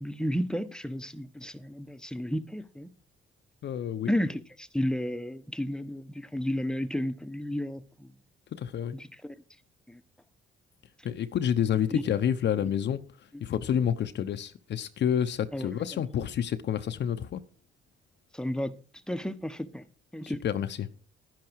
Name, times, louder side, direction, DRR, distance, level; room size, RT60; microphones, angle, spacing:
voice 1, 0.0-2.9 4.1-8.1 8.9-9.3 9.9-10.0 11.9-12.0 12.6-12.7 15.5-16.0 18.3-18.7 19.1-19.8 20.1-20.4, equal, 5° left, 1.1 m, -32 dB
voice 2, 3.6-4.1 8.5-9.0 11.0-13.0 13.4-17.4 20.4-20.9, left 9 dB, 65° left, 0.9 m, -29 dB
11.5 x 10.5 x 4.7 m
cardioid pair, 90°, 20 cm